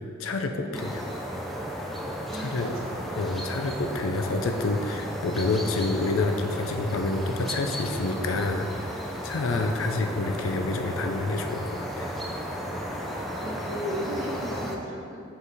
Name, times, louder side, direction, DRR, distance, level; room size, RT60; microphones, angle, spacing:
voice 1, 0.2-0.9 2.3-2.7 3.1-12.1, left 3 dB, 80° left, 6 dB, 0.5 m, -28 dB
sound 1, 0.7-14.8, equal, ahead, 0.5 m, -34 dB
voice 2, 2.2-3.1 9.5-9.7 13.3-15.2, equal, 80° right, -2 dB, 1.1 m, -36 dB
5.5 x 4.8 x 4.0 m, 2.3 s
head